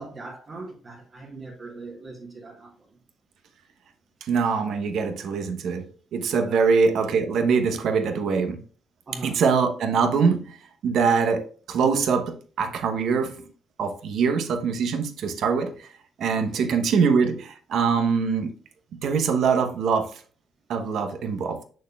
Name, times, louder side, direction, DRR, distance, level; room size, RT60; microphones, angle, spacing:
voice 1, 0.0-2.9 6.5-6.8 9.1-9.4 16.3-16.8, right 3 dB, 45° right, 1.4 m, -40 dB
voice 2, 4.2-5.8 6.1-8.6 9.2-10.6 10.8-13.4 13.8-15.7 16.2-18.5 19.0-20.1 20.7-21.6, right 5 dB, 70° right, 0.9 m, -23 dB
6.4 x 6.3 x 2.3 m
cardioid pair, 90°, 0 cm